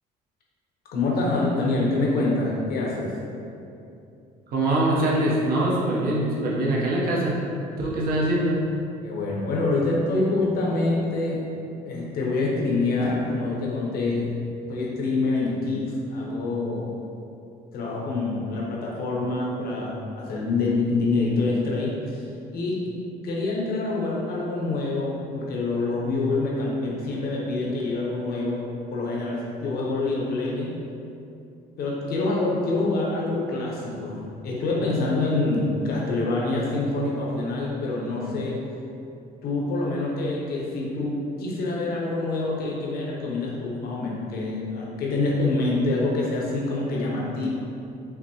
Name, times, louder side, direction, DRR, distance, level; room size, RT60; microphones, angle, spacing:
voice 1, 0.9-3.2 9.0-11.5 11.9-14.4 14.7-16.9 17.7-22.3 22.5-22.9 23.2-30.7 31.8-38.6 39.4-47.5, left 2 dB, 65° left, -3 dB, 0.9 m, -26 dB
voice 2, 4.5-7.3 7.8-8.6, right 1 dB, 60° right, -5 dB, 0.9 m, -23 dB
5.6 x 2.1 x 2.9 m, 2.7 s
cardioid pair, 110°, 17 cm